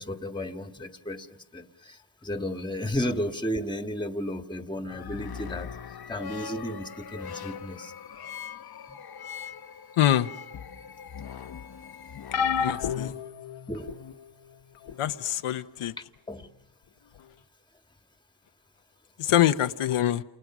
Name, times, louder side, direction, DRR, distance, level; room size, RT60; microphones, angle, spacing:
voice 1, 0.0-5.7 6.1-7.9 13.7-14.0 14.9-15.0 16.3-16.5, equal, 10° left, 1.9 m, -33 dB
sound 1, 4.9-13.1, left 7 dB, 45° left, 1.0 m, -41 dB
voice 2, 10.0-10.3 12.5-13.1 15.0-15.9 19.2-20.2, left 12 dB, 80° left, 1.0 m, -24 dB
sound 2, 12.3-14.1 14.9-15.1 16.4-16.5, left 7 dB, 65° left, 1.5 m, -30 dB
29.5 x 29.0 x 6.2 m
cardioid pair, 95°, 50 cm